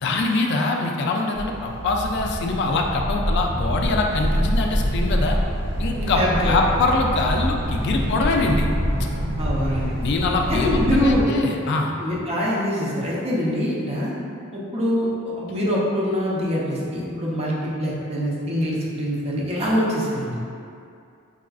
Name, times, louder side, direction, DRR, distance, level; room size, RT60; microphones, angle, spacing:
voice 1, 0.0-5.4 5.8-8.7 10.0-11.9, left 3 dB, 55° left, 1 dB, 0.3 m, -23 dB
sound 1, 1.3-11.2, equal, 90° right, 0.5 m, -25 dB
voice 2, 6.0-6.6 9.4-9.9 10.5-11.3 12.0-14.1 14.5-15.1 15.3-20.3, equal, 30° right, -5 dB, 0.6 m, -24 dB
4.7 x 2.4 x 2.3 m, 2.5 s
head